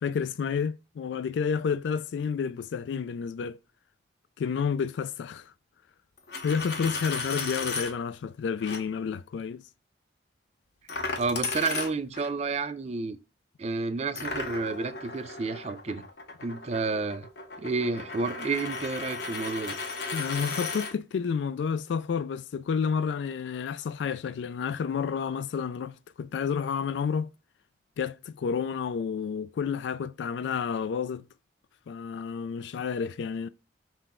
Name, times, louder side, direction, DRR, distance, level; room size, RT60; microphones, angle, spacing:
voice 1, 0.0-3.6 4.4-5.5 6.4-9.6 20.1-27.3 28.0-31.3 31.9-33.5, left 6 dB, 80° left, 0.3 m, -30 dB
Coin (dropping), 6.2-7.9 8.6-8.8 10.9-12.3 14.2-20.9, left 4 dB, 60° left, 0.7 m, -35 dB
voice 2, 11.2-13.2 13.6-16.0 16.4-17.3 17.6-19.8, right 4 dB, 35° right, 0.4 m, -30 dB
5.9 x 2.2 x 3.5 m
head